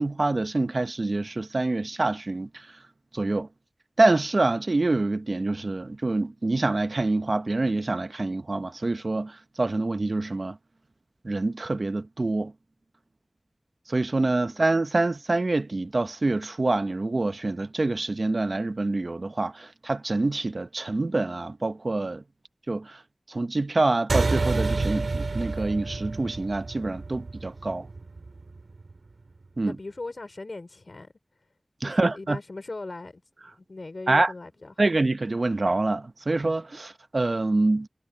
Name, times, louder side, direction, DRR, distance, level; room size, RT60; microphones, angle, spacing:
voice 1, 0.0-2.7 3.1-3.5 4.0-10.6 11.2-12.5 13.9-22.2 22.7-23.0 23.3-27.9 29.6-29.8 31.8-32.4 34.1-34.3 34.8-37.9, right 2 dB, 60° right, 0.8 m, -26 dB
sound 1, 24.1-28.9, right 3 dB, 85° right, 2.3 m, -29 dB
voice 2, 29.6-31.1 31.8-34.7, left 2 dB, 65° left, 3.5 m, -39 dB
wide cardioid pair, 45°, 0 cm